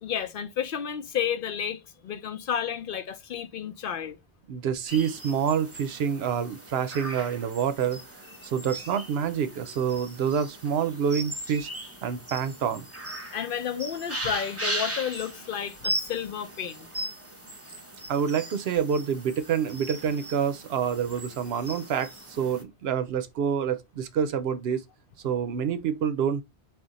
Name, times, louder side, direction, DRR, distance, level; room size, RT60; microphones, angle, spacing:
voice 1, 0.0-4.2 13.3-16.9, left 8 dB, 65° left, 0.7 m, -31 dB
voice 2, 4.5-8.0 8.4-11.7 12.0-12.9 18.1-24.8 25.2-26.4, right 7 dB, 75° right, 0.8 m, -27 dB
sound 1, 4.9-22.6, right 1 dB, 15° right, 0.7 m, -38 dB
3.6 x 2.4 x 3.9 m
omnidirectional pair, 1.1 m